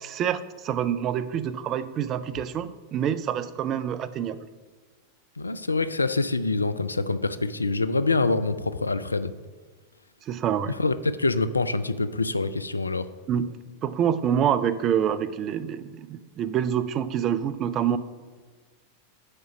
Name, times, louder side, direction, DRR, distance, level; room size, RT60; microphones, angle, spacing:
voice 1, 0.0-4.4 10.3-10.7 13.3-13.5 13.8-18.0, right 9 dB, 30° right, 13 dB, 0.4 m, -26 dB
voice 2, 5.4-9.3 10.8-13.1, left 3 dB, 80° left, 13 dB, 0.3 m, -25 dB
6.6 x 5.0 x 5.8 m, 1.4 s
figure-of-eight pair, 90°, 0 cm